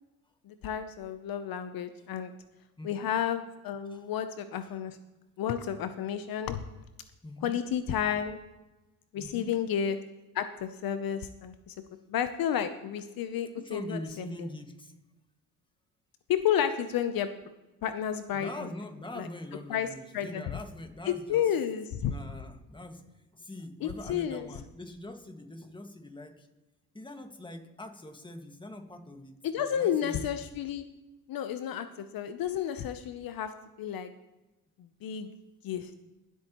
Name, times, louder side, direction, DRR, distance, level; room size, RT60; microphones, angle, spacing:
voice 1, 0.5-2.3 2.8-5.0 5.4-6.6 7.4-8.4 9.1-10.0 10.3-11.7 12.1-14.3 16.3-17.3 17.8-18.7 19.2-19.3 19.7-19.9 20.1-20.4 21.0-22.1 23.8-24.5 29.4-30.9 31.3-34.1 34.8-35.3 35.6-35.9, left 9 dB, 65° left, 10 dB, 0.8 m, -31 dB
voice 2, 2.8-3.1 3.9-4.1 4.6-4.7 7.2-7.6 9.1-9.5 13.6-15.0 18.3-21.5 22.0-26.5 26.9-30.3, left 1 dB, 10° left, 5 dB, 1.8 m, -43 dB
21.0 x 8.2 x 3.0 m, 1.1 s
supercardioid pair, 70°, 38 cm